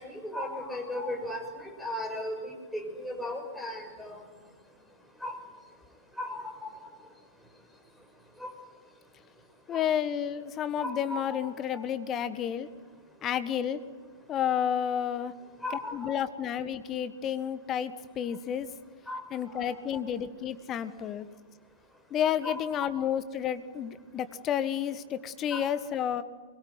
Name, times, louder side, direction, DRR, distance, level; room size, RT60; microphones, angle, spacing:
voice 1, 0.0-4.2 5.2-5.4 6.2-6.7 8.4-8.5 9.7-9.8 10.8-11.5 15.6-16.2 19.1-19.2 19.5-19.7 22.4-22.6 25.5-25.6, left 1 dB, ahead, 0 dB, 6.2 m, -36 dB
voice 2, 9.7-12.7 13.2-13.8 14.3-15.3 15.7-18.7 19.3-21.3 22.1-26.2, left 9 dB, 25° left, 13 dB, 1.6 m, -31 dB
24.0 x 22.0 x 9.6 m, 1.5 s
figure-of-eight pair, 105°, 0 cm